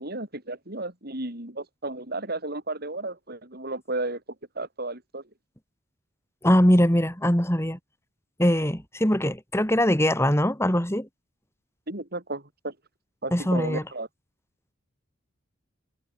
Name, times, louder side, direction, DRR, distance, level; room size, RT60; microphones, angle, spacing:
voice 1, 0.0-4.2 4.5-5.2 11.9-12.8 13.2-14.1, right 2 dB, 50° right, 6.1 m, -33 dB
voice 2, 6.4-7.8 8.4-11.1 13.3-13.8, equal, 15° left, 5.0 m, -22 dB
head